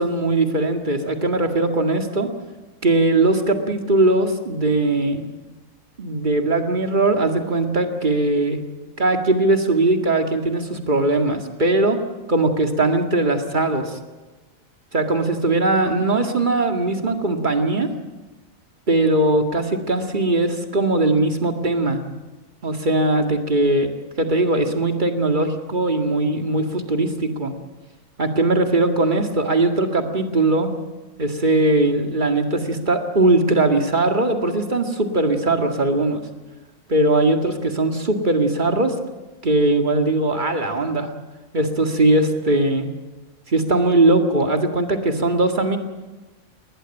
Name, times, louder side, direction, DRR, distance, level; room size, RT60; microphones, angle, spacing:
voice 1, 0.0-2.3 2.8-5.2 6.0-8.6 9.0-12.0 12.3-14.0 14.9-17.9 18.9-22.0 22.6-23.9 24.2-27.5 28.2-30.7 31.2-36.2 36.9-39.0 39.4-41.1 41.5-42.9 43.5-45.8, right 2 dB, 35° right, 5 dB, 2.2 m, -20 dB
21.0 x 19.5 x 9.0 m, 1.2 s
omnidirectional pair, 1.4 m